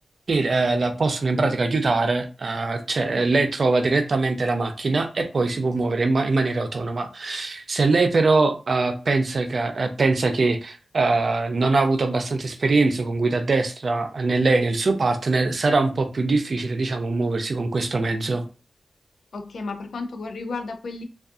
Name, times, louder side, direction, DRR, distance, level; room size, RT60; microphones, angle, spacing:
voice 1, 0.3-18.4, right 3 dB, 55° right, 0.4 m, -22 dB
voice 2, 19.3-21.0, left 3 dB, 80° left, 0.5 m, -33 dB
2.5 x 2.3 x 2.4 m
wide cardioid pair, 85°, 0 cm